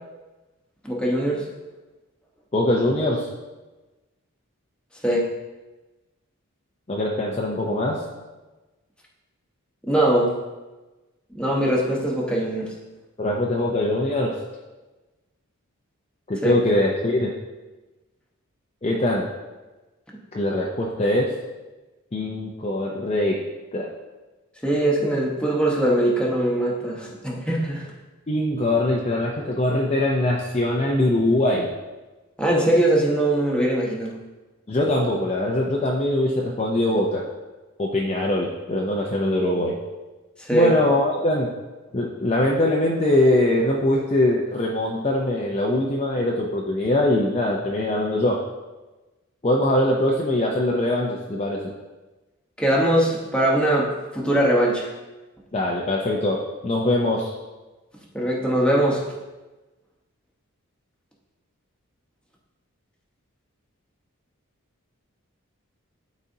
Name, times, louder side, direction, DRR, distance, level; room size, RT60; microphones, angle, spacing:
voice 1, 0.8-1.4 5.0-5.3 9.9-10.3 11.3-12.7 16.4-16.5 24.6-27.8 32.4-34.1 40.4-40.7 52.6-53.9 54.1-54.9 58.1-59.0, right 1 dB, 5° left, -3 dB, 1.1 m, -21 dB
voice 2, 2.5-3.3 6.9-8.0 13.2-14.4 16.3-17.3 18.8-19.3 20.3-21.4 22.1-23.4 23.7-23.9 28.3-31.7 34.7-37.3 37.8-39.8 40.5-41.5 41.9-48.4 49.4-51.7 55.5-57.3, left 1 dB, 30° left, -2 dB, 0.5 m, -22 dB
12.0 x 4.1 x 2.7 m, 1.2 s
head